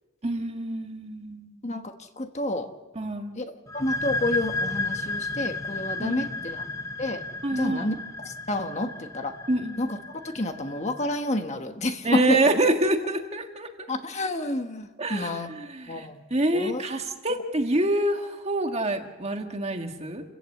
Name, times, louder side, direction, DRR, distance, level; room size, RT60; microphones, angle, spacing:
voice 1, 0.2-1.5 2.9-3.3 6.0-6.3 7.4-7.9 9.5-9.8 12.0-13.7 15.0-20.2, right 1 dB, 30° right, 4 dB, 1.7 m, -26 dB
voice 2, 1.6-2.7 3.4-3.5 3.7-6.6 7.0-7.2 7.5-8.0 8.2-9.4 9.8-10.0 10.2-12.4 13.9-15.5 15.9-16.2 16.5-16.8, left 1 dB, 30° left, 6 dB, 1.3 m, -29 dB
sound 1, 3.7-11.1, left 3 dB, 15° left, 0.7 m, -33 dB
29.5 x 15.0 x 8.4 m, 1.3 s
head